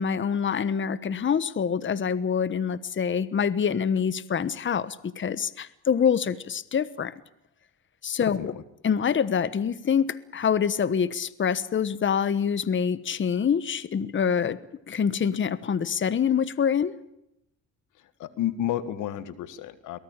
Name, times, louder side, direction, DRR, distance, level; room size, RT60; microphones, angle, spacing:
voice 1, 0.0-7.1 8.0-8.5 8.8-14.6 14.9-16.9, left 7 dB, 40° left, 16 dB, 1.2 m, -25 dB
voice 2, 8.2-8.6 18.0-20.0, left 12 dB, 85° left, 14 dB, 1.6 m, -31 dB
23.0 x 19.5 x 8.9 m, 0.81 s
cardioid pair, 90°, 30 cm